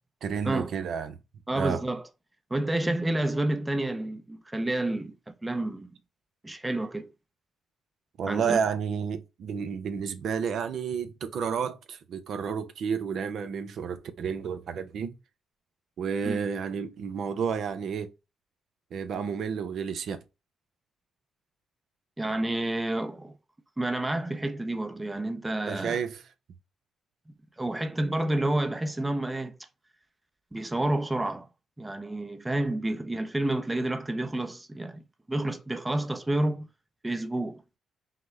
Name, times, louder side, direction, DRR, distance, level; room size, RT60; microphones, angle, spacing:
voice 1, 0.2-1.2 1.5-1.8 8.2-15.1 16.0-18.1 18.9-20.2 25.7-26.2, right 6 dB, 65° right, 0.6 m, -31 dB
voice 2, 1.5-2.0 2.5-5.9 6.4-7.1 8.3-8.6 16.2-16.4 22.2-23.4 23.8-26.0 27.6-29.6 30.5-31.5 31.8-35.0 35.3-36.7 37.0-37.6, right 1 dB, 10° right, 0.5 m, -29 dB
5.7 x 2.1 x 3.2 m
cardioid pair, 90°, 0 cm